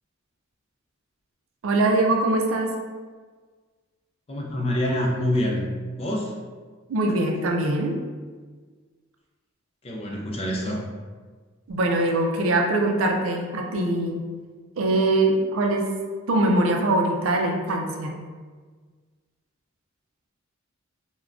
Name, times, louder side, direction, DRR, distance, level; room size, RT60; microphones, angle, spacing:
voice 1, 1.6-2.8 6.9-7.9 11.7-14.3 14.8-15.9 16.3-18.2, right 2 dB, 70° right, 1 dB, 0.4 m, -22 dB
voice 2, 4.3-5.6 6.0-6.3 9.8-10.8, left 1 dB, 30° left, 0 dB, 0.4 m, -26 dB
3.5 x 2.1 x 2.4 m, 1.5 s
head